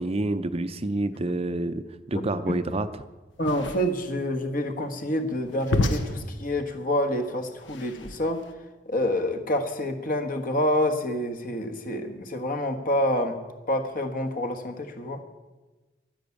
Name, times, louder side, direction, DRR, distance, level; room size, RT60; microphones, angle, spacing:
voice 1, 0.0-1.8 2.1-2.9, right 2 dB, 35° right, 10 dB, 0.6 m, -28 dB
sound 1, 3.3-8.5, left 2 dB, 85° left, 1.1 m, -31 dB
voice 2, 3.4-8.4 8.9-13.3 13.7-15.2, left 1 dB, 50° left, 6 dB, 1.4 m, -27 dB
11.0 x 10.5 x 8.3 m, 1.2 s
head